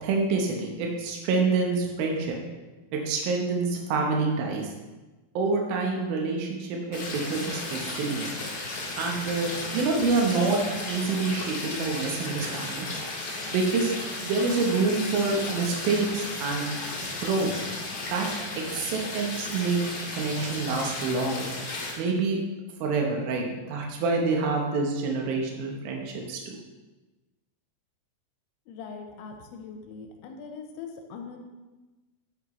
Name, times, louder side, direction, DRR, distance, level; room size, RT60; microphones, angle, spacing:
voice 1, 0.0-2.4 3.1-4.7 5.4-8.3 9.0-10.6 10.9-13.0 13.5-13.9 14.2-16.7 17.2-17.5 18.1-18.3 18.7-19.8 20.1-21.4 22.0-22.4 22.8-26.5, right 4 dB, 85° right, 1 dB, 2.1 m, -27 dB
sound 1, 6.9-21.9, left 2 dB, 55° left, 1.6 m, -34 dB
voice 2, 28.7-31.4, left 5 dB, 75° left, 3 dB, 2.9 m, -41 dB
10.0 x 9.5 x 3.1 m, 1.2 s
omnidirectional pair, 5.9 m